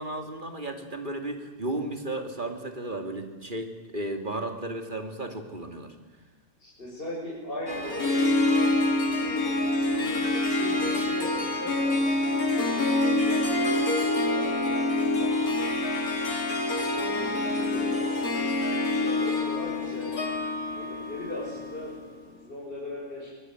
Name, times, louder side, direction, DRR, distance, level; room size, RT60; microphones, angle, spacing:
voice 1, 0.0-5.9, right 1 dB, 30° right, 5 dB, 2.8 m, -34 dB
voice 2, 6.6-15.9 16.5-18.1 18.7-20.1 20.7-23.3, left 1 dB, 35° left, -4 dB, 6.4 m, -39 dB
Harp, 7.7-22.2, left 2 dB, 75° left, 3.5 m, -26 dB
25.0 x 19.0 x 9.4 m, 1.4 s
omnidirectional pair, 1.6 m